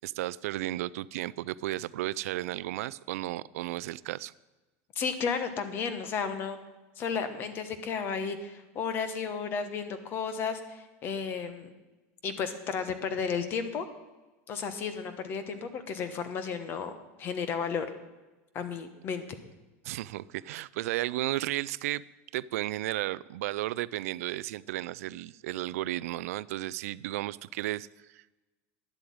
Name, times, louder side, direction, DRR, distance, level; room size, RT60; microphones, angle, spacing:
voice 1, 0.0-4.3 19.8-22.0 22.3-27.9 28.1-28.4, right 16 dB, 90° right, 19 dB, 0.4 m, -34 dB
voice 2, 4.9-6.6 7.0-11.7 12.2-13.9 14.5-16.9 17.2-17.9 18.5-19.2, left 6 dB, 30° left, 10 dB, 1.1 m, -33 dB
10.5 x 8.0 x 8.7 m, 1.1 s
supercardioid pair, 175°, 8 cm